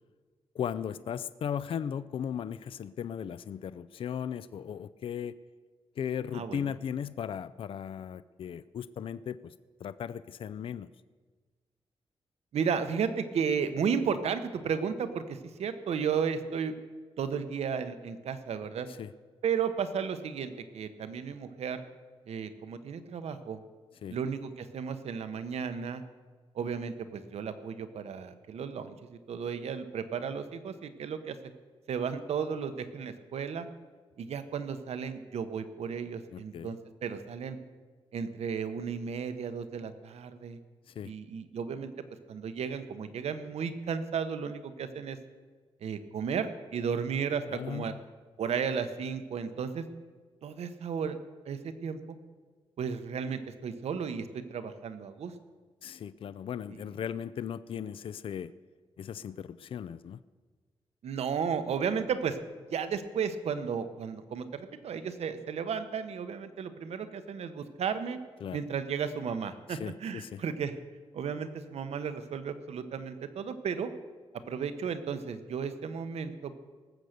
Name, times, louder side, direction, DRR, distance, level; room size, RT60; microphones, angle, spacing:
voice 1, 0.5-5.4 6.0-9.5 9.8-10.9 18.9-19.1 24.0-24.2 36.3-36.8 40.9-41.1 47.5-48.0 55.8-58.5 59.0-60.2 68.4-68.6 69.7-70.4, left 8 dB, 60° left, 16 dB, 0.4 m, -37 dB
voice 2, 6.3-6.7 12.5-16.7 17.2-18.9 19.4-21.8 22.3-23.6 24.1-26.0 26.5-31.4 31.9-33.7 34.2-37.6 38.1-40.6 41.0-41.9 42.3-45.2 45.8-47.9 48.4-49.8 50.4-51.2 51.4-52.0 52.8-55.3 56.7-56.8 61.0-62.4 62.7-68.2 68.5-70.7 71.1-73.9 74.5-76.6, right 6 dB, 90° right, 10 dB, 1.0 m, -34 dB
19.0 x 7.8 x 6.7 m, 1.4 s
wide cardioid pair, 175°, 11 cm